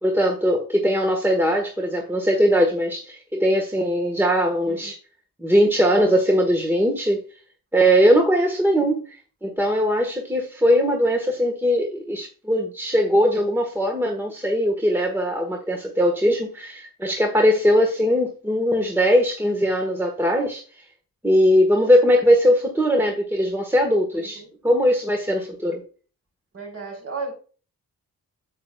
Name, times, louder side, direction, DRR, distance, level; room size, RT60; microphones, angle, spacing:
voice 1, 0.0-4.9 5.4-7.2 7.7-9.1 9.4-20.6 21.2-25.8, equal, 5° right, 1.3 m, -20 dB
voice 2, 24.1-24.5 26.5-27.3, right 4 dB, 40° right, 3.9 m, -34 dB
8.6 x 7.6 x 2.3 m
cardioid pair, 95°, 35 cm